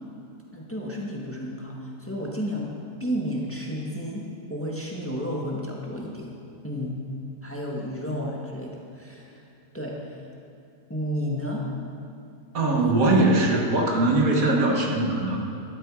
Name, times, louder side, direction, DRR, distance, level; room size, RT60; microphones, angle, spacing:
voice 1, 0.5-2.7 3.0-4.2 4.5-6.3 6.6-6.9 7.4-9.4 9.7-10.2 10.9-11.6 12.7-12.9, equal, 10° left, -3 dB, 1.6 m, -32 dB
voice 2, 12.5-15.4, right 2 dB, 75° right, 0 dB, 1.9 m, -21 dB
13.0 x 12.5 x 4.9 m, 2.5 s
omnidirectional pair, 1.5 m